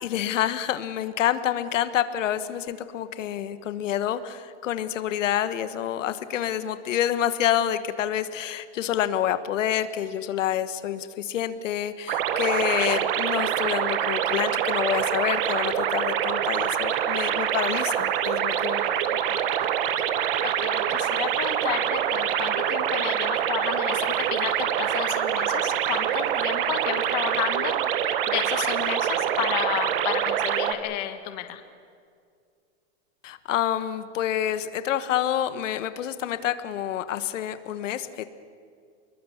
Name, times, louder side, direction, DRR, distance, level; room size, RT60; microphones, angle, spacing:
voice 1, 0.0-18.8 33.2-38.2, left 11 dB, 85° left, 12 dB, 1.3 m, -28 dB
sound 1, 12.1-30.7, right 10 dB, 45° right, 1.4 m, -25 dB
voice 2, 20.0-31.6, left 12 dB, 35° left, 9 dB, 1.4 m, -32 dB
26.0 x 21.5 x 7.2 m, 2.2 s
supercardioid pair, 175°, 37 cm